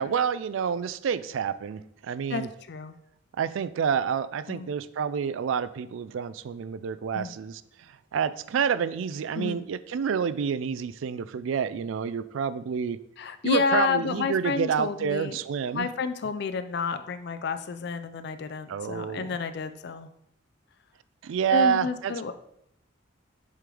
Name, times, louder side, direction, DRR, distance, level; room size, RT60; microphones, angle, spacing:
voice 1, 0.0-2.5 3.4-7.6 8.1-13.0 13.4-15.9 18.7-19.4 21.2-22.1, right 7 dB, 75° right, 15 dB, 0.3 m, -28 dB
voice 2, 2.3-2.9 4.5-4.7 7.1-7.3 9.4-9.6 13.2-15.4 15.7-20.1 21.5-22.3, left 5 dB, 55° left, 10 dB, 0.4 m, -30 dB
7.5 x 3.8 x 3.3 m, 0.75 s
head